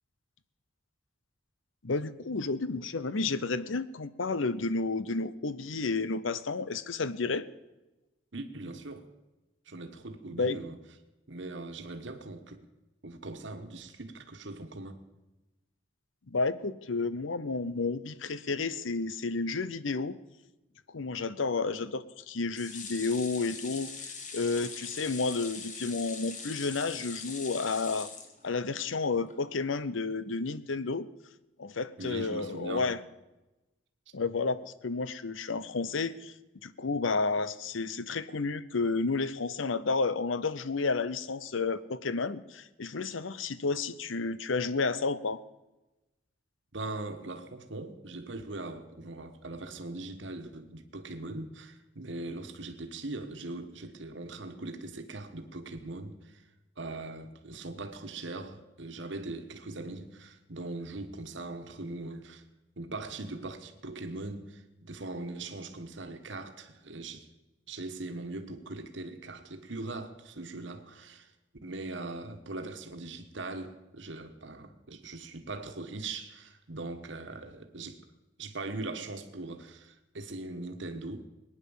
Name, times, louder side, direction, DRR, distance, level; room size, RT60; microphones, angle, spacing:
voice 1, 1.8-7.5 10.4-10.6 16.3-20.2 20.9-28.1 28.4-31.1 31.6-33.0 34.1-36.3 36.6-45.4, left 4 dB, 80° left, 0.8 m, -31 dB
voice 2, 8.3-9.1 9.7-10.8 11.3-12.6 13.0-15.0 32.0-32.9 46.7-56.4 56.8-62.4 62.8-67.3 67.7-71.3 71.6-78.0 78.4-81.3, right 2 dB, 70° right, 1.4 m, -40 dB
sound 1, 22.5-28.9 29.3-29.4 29.7-29.8, left 5 dB, 40° left, 1.8 m, -42 dB
19.5 x 9.8 x 7.2 m
head